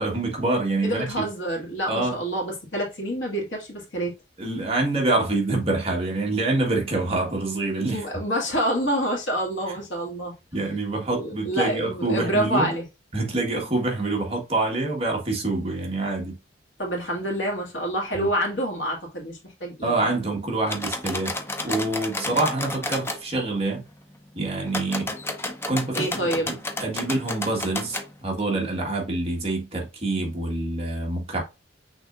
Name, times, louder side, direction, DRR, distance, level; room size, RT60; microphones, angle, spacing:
voice 1, 0.0-1.3 1.9-2.2 4.4-8.0 10.5-12.7 13.1-16.4 18.1-18.3 19.8-21.4 21.6-23.8 24.3-25.1 25.7-31.4, right 2 dB, 30° right, 1.4 m, -26 dB
voice 2, 0.8-4.1 7.9-10.3 11.1-12.8 16.8-20.0 25.9-26.5, right 1 dB, 70° left, 1.9 m, -27 dB
sound 1, 20.7-23.2 24.7-28.1, left 2 dB, 10° left, 0.6 m, -31 dB
6.0 x 3.5 x 2.4 m
head